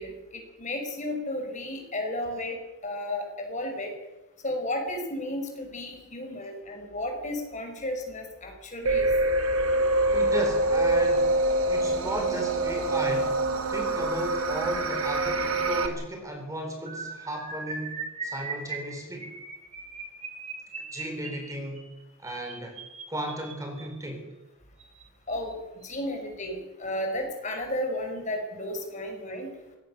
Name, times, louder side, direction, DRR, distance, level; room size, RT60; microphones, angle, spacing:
voice 1, 0.0-2.6 2.8-3.9 4.4-9.1 25.3-29.5, left 1 dB, 35° left, 3 dB, 5.7 m, -33 dB
sound 1, 8.9-15.9, right 1 dB, 85° right, 2.6 m, -25 dB
voice 2, 10.1-11.4 11.7-13.4 13.7-19.3 20.8-21.9 22.2-22.8 23.1-24.3, right 1 dB, 15° right, 3 dB, 3.7 m, -35 dB
sound 2, 16.9-24.0 24.8-25.0 25.3-25.5 25.8-26.0, right 4 dB, 30° right, 4.4 m, -39 dB
25.0 x 18.0 x 6.7 m, 1.0 s
head